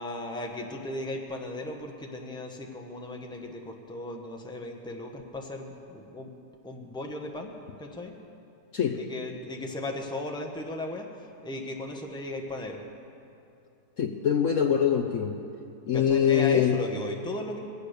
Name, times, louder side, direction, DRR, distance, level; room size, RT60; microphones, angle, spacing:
voice 1, 0.0-6.3 6.6-7.5 7.8-8.2 9.0-12.8 15.9-17.6, left 2 dB, 5° left, 1 dB, 1.0 m, -36 dB
voice 2, 14.0-15.3 15.9-16.8, left 8 dB, 60° left, 4 dB, 1.0 m, -23 dB
22.0 x 8.4 x 6.7 m, 2.6 s
omnidirectional pair, 1.7 m